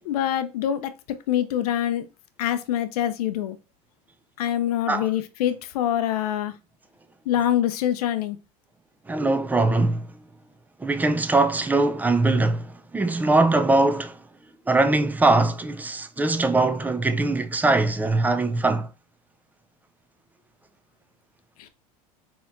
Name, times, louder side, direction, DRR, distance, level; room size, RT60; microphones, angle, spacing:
voice 1, 0.0-2.0 2.4-3.6 4.4-6.5 7.3-8.4 21.6-21.7, left 11 dB, 85° left, 0.5 m, -25 dB
voice 2, 9.1-10.1 10.8-14.2 14.7-18.9, right 2 dB, 10° right, 0.4 m, -21 dB
4.1 x 2.9 x 2.5 m
supercardioid pair, 110°, 19 cm